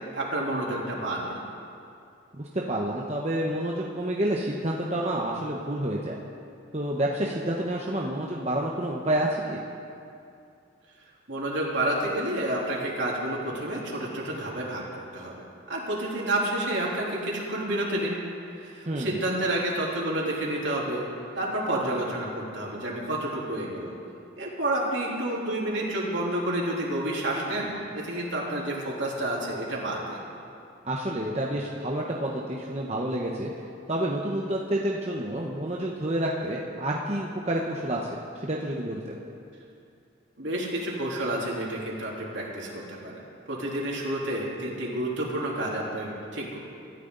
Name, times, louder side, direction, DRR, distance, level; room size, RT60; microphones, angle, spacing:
voice 1, 0.1-1.4 11.3-15.3 15.7-18.2 18.6-21.0 21.4-23.9 24.4-30.2 40.4-43.2 43.5-46.6, right 1 dB, 70° right, -4 dB, 3.6 m, -29 dB
voice 2, 2.4-6.2 6.7-9.6 18.9-19.2 30.8-33.5 33.9-38.0 38.4-39.2, right 1 dB, 35° right, -2 dB, 1.1 m, -29 dB
25.5 x 14.0 x 4.0 m, 2.5 s
head